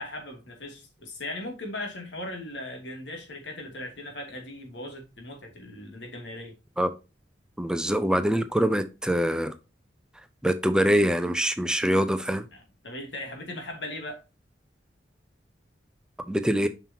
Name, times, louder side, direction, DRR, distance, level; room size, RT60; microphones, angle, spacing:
voice 1, 0.0-6.5 12.5-14.2, left 1 dB, 85° left, 2.7 m, -38 dB
voice 2, 7.6-9.5 10.4-12.4 16.3-16.7, equal, 5° right, 0.5 m, -24 dB
7.3 x 5.9 x 2.9 m
head